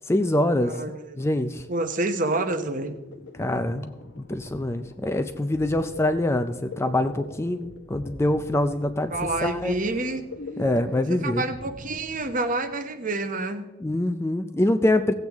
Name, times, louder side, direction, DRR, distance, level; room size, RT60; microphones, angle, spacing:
voice 1, 0.1-0.8 1.2-1.6 3.3-3.9 4.2-9.1 9.4-9.7 10.6-11.4 13.8-15.1, left 1 dB, 15° left, 9 dB, 0.4 m, -24 dB
voice 2, 0.6-1.2 1.7-2.9 9.1-10.2 11.1-13.7, right 2 dB, 45° right, 8 dB, 0.9 m, -28 dB
sound 1, 2.2-12.7, left 2 dB, 60° left, 1.0 m, -42 dB
16.0 x 8.0 x 3.5 m, 1.0 s
head